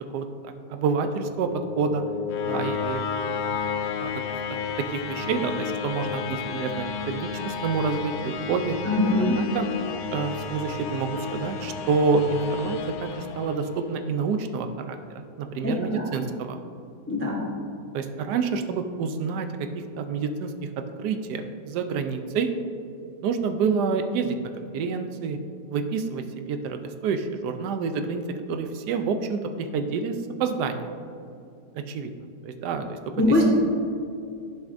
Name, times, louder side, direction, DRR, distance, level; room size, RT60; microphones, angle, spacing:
voice 1, 0.0-1.5 1.8-2.0 2.4-3.6 4.0-4.1 4.5-4.6 4.9-8.8 9.4-9.7 10.1-16.6 17.9-19.7 20.0-20.7 21.0-22.5 23.2-25.4 25.7-28.2 28.5-30.9 31.9-32.1 32.4-33.0, right 5 dB, 80° right, 7 dB, 1.1 m, -28 dB
sound 1, 1.0-14.0, left 6 dB, 75° left, 1.1 m, -32 dB
voice 2, 8.8-9.4 15.6-16.0 17.1-17.4 33.2-33.4, left 1 dB, 15° left, -2 dB, 0.5 m, -22 dB
11.5 x 4.9 x 2.5 m, 2.4 s
omnidirectional pair, 1.8 m